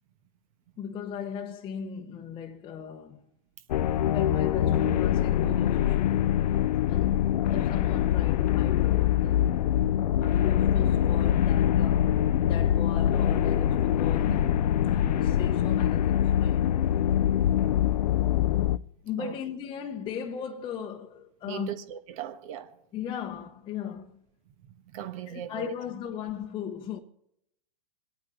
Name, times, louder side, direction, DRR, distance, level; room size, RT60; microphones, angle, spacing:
voice 1, 0.8-3.2 4.0-6.4 6.9-9.6 10.2-12.1 12.4-14.5 14.9-16.8 19.0-21.7 22.9-24.2 25.3-27.0, left 8 dB, 25° left, 0.9 m, -37 dB
sound 1, 3.7-18.8, left 11 dB, 75° left, 0.6 m, -24 dB
voice 2, 21.5-22.8 24.6-25.7, right 10 dB, 50° right, 1.4 m, -38 dB
26.5 x 8.9 x 4.0 m
hypercardioid pair, 125°, 21 cm